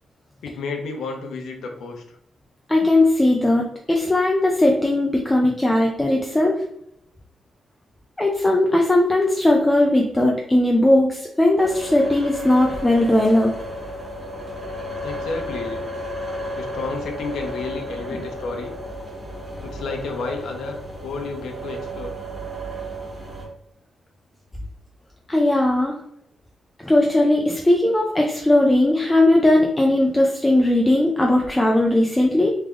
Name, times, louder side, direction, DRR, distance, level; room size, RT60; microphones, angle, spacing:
voice 1, 0.4-2.2 15.0-15.8 16.6-18.7 19.6-22.2, left 3 dB, 85° left, 3 dB, 0.8 m, -31 dB
voice 2, 2.7-6.6 8.2-13.5 18.1-18.2 25.3-25.9 26.8-32.5, left 1 dB, 10° left, 0 dB, 0.4 m, -18 dB
sound 1, 11.6-23.5, equal, 15° right, 1.2 m, -33 dB
3.5 x 3.4 x 3.6 m, 0.75 s
wide cardioid pair, 170°, 0 cm